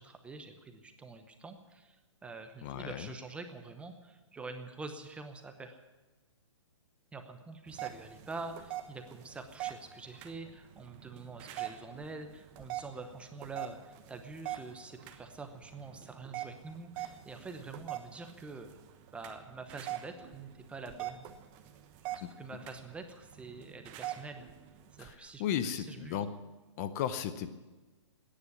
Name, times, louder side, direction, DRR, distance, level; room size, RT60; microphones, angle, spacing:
voice 1, 0.0-5.8 7.1-18.7 19.1-21.3 22.1-24.5 25.0-26.2, right 3 dB, 5° right, 7 dB, 0.9 m, -46 dB
voice 2, 2.6-3.1 22.2-22.3 25.0-25.1 25.4-26.3 26.8-27.5, left 9 dB, 30° left, 11 dB, 0.8 m, -35 dB
sound 1, 7.7-25.1, right 13 dB, 30° right, 1.1 m, -44 dB
14.5 x 10.0 x 9.6 m, 1.2 s
hypercardioid pair, 150°, 16 cm